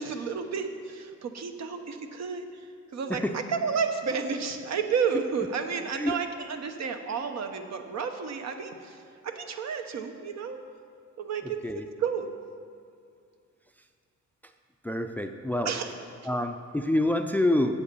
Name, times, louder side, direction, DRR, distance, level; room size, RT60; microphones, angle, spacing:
voice 1, 0.0-10.6 11.2-12.3 15.6-15.9, right 6 dB, 60° right, 6 dB, 1.0 m, -31 dB
voice 2, 14.8-15.7 16.2-17.7, left 1 dB, 5° left, 6 dB, 0.4 m, -27 dB
8.2 x 7.5 x 6.9 m, 2.3 s
cardioid pair, 90°, 30 cm